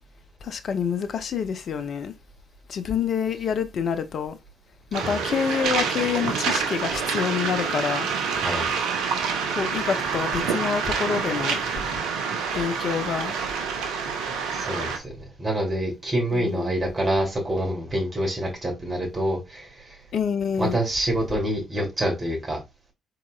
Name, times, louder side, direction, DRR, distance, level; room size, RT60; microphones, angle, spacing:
voice 1, 0.4-2.1 2.7-4.4 4.9-8.1 9.6-11.6 12.5-13.3 16.3-16.7 20.1-20.8, left 7 dB, 55° left, 0.5 m, -27 dB
Waves surf, 4.9-15.0, right 5 dB, 65° right, 0.7 m, -27 dB
voice 2, 8.3-8.7 14.5-20.0 20.6-22.6, right 1 dB, 35° right, 2.6 m, -27 dB
4.8 x 4.1 x 2.3 m
figure-of-eight pair, 40°, 0 cm